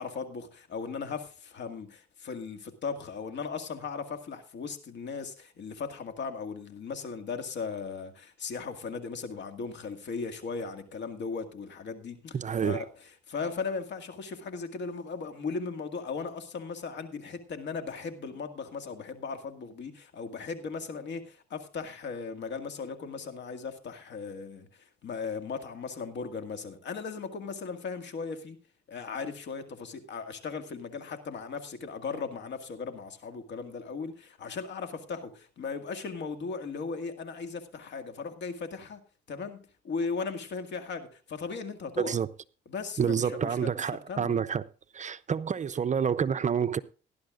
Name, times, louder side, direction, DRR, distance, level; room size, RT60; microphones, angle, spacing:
voice 1, 0.0-28.6 28.9-39.0 39.3-42.2 42.7-43.7 44.1-44.5, left 5 dB, 65° left, 2.0 m, -37 dB
voice 2, 12.3-12.8 42.0-42.3 43.0-44.6 44.9-46.8, right 7 dB, 35° right, 0.6 m, -28 dB
18.0 x 11.0 x 2.5 m
cardioid pair, 90°, 20 cm